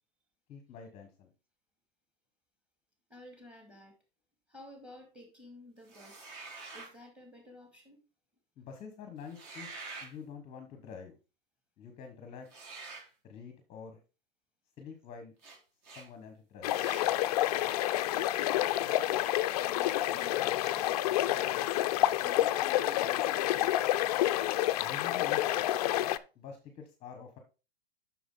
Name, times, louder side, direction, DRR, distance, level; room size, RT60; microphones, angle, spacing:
voice 1, 0.5-1.3 8.6-9.7 10.0-11.2 11.8-12.6 13.2-14.0 14.8-15.3 16.0-16.8 24.8-25.5 26.3-27.4, left 6 dB, 20° left, 6 dB, 1.1 m, -47 dB
voice 2, 3.1-4.0 4.5-6.3 6.7-8.0 19.7-20.9 22.2-23.7, left 1 dB, 5° right, 4 dB, 2.1 m, -52 dB
sound 1, 5.9-6.9 9.2-10.1 12.5-13.1 15.4-15.6 15.8-16.1 16.7-17.1, right 4 dB, 40° right, 3.3 m, -46 dB
sound 2, 16.6-26.2, left 14 dB, 40° left, 0.4 m, -29 dB
7.8 x 6.1 x 3.8 m, 0.32 s
hypercardioid pair, 145°, 31 cm